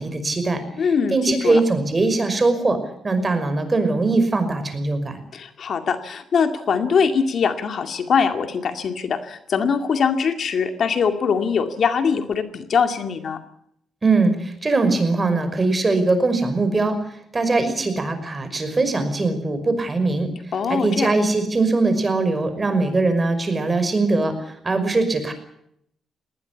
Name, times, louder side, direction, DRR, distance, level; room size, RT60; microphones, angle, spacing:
voice 1, 0.0-0.6 1.1-2.8 3.0-5.2 14.0-17.0 17.3-20.3 20.7-25.3, right 3 dB, 25° right, 9 dB, 5.5 m, -21 dB
voice 2, 0.8-1.2 1.4-1.6 5.3-13.4 20.5-21.1, left 6 dB, 55° left, 7 dB, 2.3 m, -22 dB
20.5 x 19.0 x 8.6 m, 0.73 s
cardioid pair, 100°, 0 cm